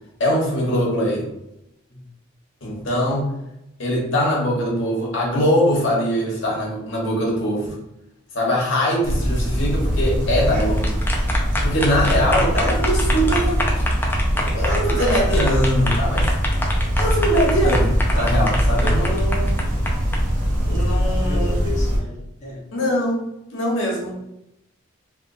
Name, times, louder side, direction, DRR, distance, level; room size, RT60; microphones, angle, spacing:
voice 1, 0.2-1.3 2.6-3.3 3.8-7.8 8.3-11.0 11.6-13.7 14.3-16.3 17.0-19.6 20.6-21.5 22.7-23.3 23.5-24.1, equal, 80° left, -3 dB, 1.2 m, -22 dB
sound 1, 9.0-22.0, equal, 40° right, 0.8 m, -21 dB
sound 2, 10.4-20.2, left 1 dB, 10° left, 0.4 m, -27 dB
voice 2, 21.0-22.6, left 3 dB, 35° left, -5 dB, 1.2 m, -35 dB
3.5 x 3.1 x 2.6 m, 0.85 s
head